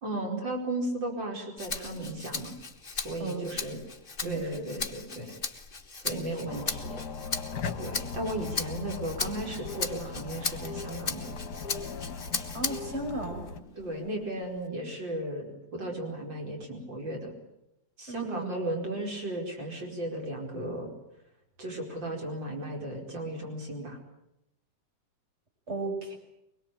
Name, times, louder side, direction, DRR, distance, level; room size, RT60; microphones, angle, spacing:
voice 1, 0.0-2.5 2.9-3.8 4.2-5.3 5.9-7.0 7.8-11.4 13.8-15.5 15.7-17.3 18.0-20.9 21.6-24.0, right 1 dB, 85° right, 1 dB, 5.7 m, -35 dB
Rattle (instrument), 1.6-13.0 13.5-14.7, left 4 dB, 30° left, 1.7 m, -37 dB
voice 2, 3.2-3.5 4.2-4.7 6.1-6.5 12.5-13.5 18.1-18.6 25.7-26.2, right 3 dB, 35° right, 4 dB, 5.7 m, -35 dB
sound 1, 6.5-13.6, left 5 dB, 65° left, 2.1 m, -38 dB
24.0 x 21.5 x 8.8 m, 0.84 s
omnidirectional pair, 2.0 m